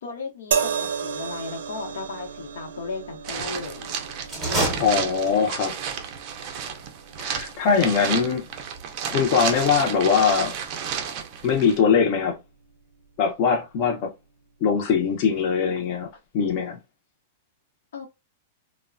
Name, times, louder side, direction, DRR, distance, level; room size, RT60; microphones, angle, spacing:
voice 1, 0.0-3.9 17.9-18.1, left 4 dB, 85° left, 0.8 m, -35 dB
sound 1, 0.5-13.8 14.8-15.0, right 6 dB, 90° right, 0.5 m, -35 dB
sound 2, 3.2-11.8, right 7 dB, 35° right, 0.4 m, -32 dB
sound 3, 4.2-5.6, right 1 dB, 5° right, 0.8 m, -28 dB
voice 2, 4.8-5.7 7.2-8.4 9.1-10.5 11.4-12.4 13.2-14.1 14.6-16.1 16.3-16.8, left 6 dB, 35° left, 0.6 m, -21 dB
3.0 x 2.1 x 2.5 m
supercardioid pair, 170°, 0 cm